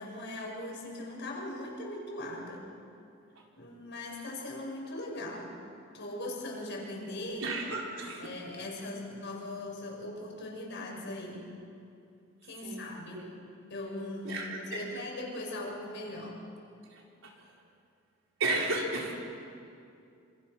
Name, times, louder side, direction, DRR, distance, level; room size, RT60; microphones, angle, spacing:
voice 1, 0.0-2.7 3.6-5.6 5.9-7.5 8.2-11.5 12.4-13.3 13.7-16.4, left 1 dB, 60° left, -1 dB, 6.2 m, -40 dB
voice 2, 7.4-8.3 12.6-13.3 14.2-14.9 17.2-17.3 18.4-19.1, right 2 dB, 70° right, -2 dB, 4.8 m, -33 dB
27.0 x 27.0 x 6.1 m, 2.6 s
head